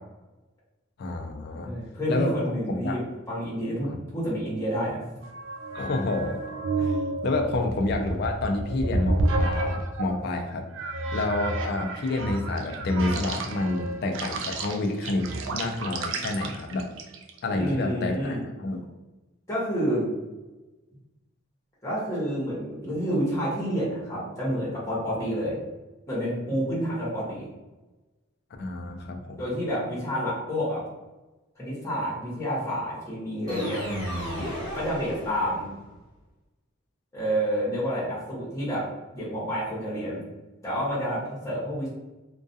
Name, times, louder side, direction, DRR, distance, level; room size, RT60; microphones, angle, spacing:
voice 1, 1.0-1.7 2.1-2.3 2.8-3.0 5.7-6.4 6.8-10.7 11.1-16.9 17.4-18.8 28.6-29.4, left 2 dB, 50° left, 4 dB, 0.3 m, -29 dB
voice 2, 1.6-5.2 17.5-18.4 19.5-20.1 21.8-25.6 26.1-27.5 29.4-30.8 31.6-33.9 34.7-35.7 37.1-38.9 39.1-40.3 40.6-41.9, equal, 15° left, -7 dB, 0.9 m, -29 dB
sound 1, 5.2-10.2 10.7-17.4, right 2 dB, 65° right, 0.4 m, -30 dB
sound 2, 33.5-35.8, equal, 20° right, 1.1 m, -33 dB
2.3 x 2.2 x 2.6 m, 1.1 s
head